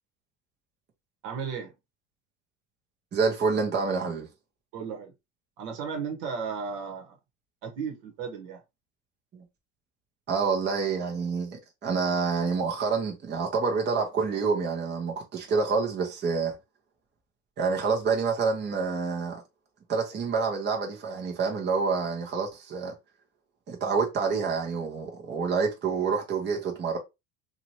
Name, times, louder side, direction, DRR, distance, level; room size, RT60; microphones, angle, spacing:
voice 1, 1.2-1.7 4.7-5.1 5.6-7.2 7.6-8.6, right 6 dB, 65° right, 1.3 m, -34 dB
voice 2, 3.1-4.3 9.3-9.4 10.3-16.6 17.6-19.4 19.9-22.9 23.7-27.0, right 5 dB, 30° right, 0.9 m, -27 dB
2.9 x 2.6 x 2.9 m
hypercardioid pair, 85°, 37 cm